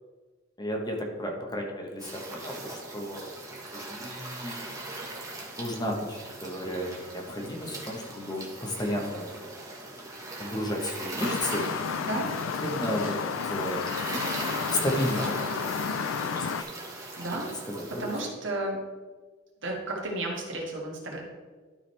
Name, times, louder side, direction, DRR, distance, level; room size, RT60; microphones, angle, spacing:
voice 1, 0.6-3.3 3.7-4.7 5.6-9.4 10.4-11.6 12.6-13.2 13.5-14.1 14.7-15.5 16.5-16.7 17.6-18.1, equal, 20° left, 0 dB, 1.1 m, -33 dB
sound 1, 2.0-18.3, right 2 dB, 15° right, 1.3 m, -39 dB
sound 2, 11.2-16.6, left 6 dB, 85° left, 0.4 m, -32 dB
voice 2, 12.0-12.3 17.0-17.5 17.9-18.8 19.6-21.2, right 1 dB, 65° right, -2 dB, 1.9 m, -33 dB
11.5 x 5.0 x 3.4 m, 1.4 s
head